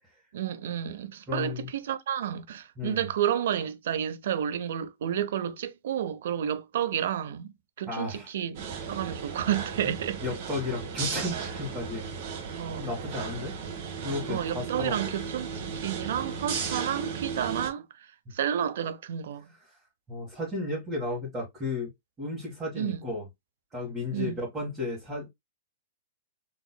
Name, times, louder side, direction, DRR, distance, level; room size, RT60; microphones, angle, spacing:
voice 1, 0.3-7.5 7.8-8.6 8.9-10.2 12.5-12.9 14.3-17.8 18.3-19.5 22.8-23.0 24.1-24.4, right 10 dB, 70° right, 0.6 m, -31 dB
voice 2, 1.3-1.7 2.8-3.1 7.9-8.3 10.2-12.0 12.8-13.6 14.0-15.1 19.7-19.8 20.1-21.9 22.2-23.3 23.7-25.3, left 2 dB, 15° right, 1.6 m, -33 dB
sound 1, 8.5-17.7, right 6 dB, 55° right, 1.3 m, -35 dB
4.1 x 2.9 x 2.2 m
hypercardioid pair, 140°, 0 cm